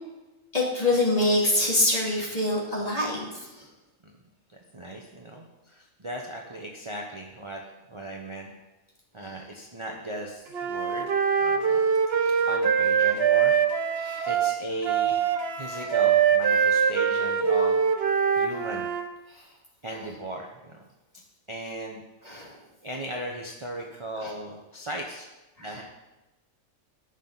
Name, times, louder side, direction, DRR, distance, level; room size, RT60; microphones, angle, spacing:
voice 1, 0.5-3.5 9.2-9.4 12.2-12.3 14.0-14.3 22.2-22.5 24.2-24.3 25.6-25.8, left 1 dB, 25° left, -3 dB, 2.5 m, -25 dB
voice 2, 4.7-7.6 7.9-8.5 9.1-11.1 11.4-11.8 12.5-13.5 14.3-15.2 15.6-17.8 18.4-18.9 19.8-20.8 21.5-22.0 22.8-25.3 25.6-25.8, right 1 dB, 25° right, -1 dB, 0.9 m, -37 dB
Wind instrument woodwind instrument, 10.5-19.0, right 7 dB, 55° right, 1.0 m, -23 dB
18.0 x 6.1 x 4.1 m, 1.1 s
omnidirectional pair, 1.4 m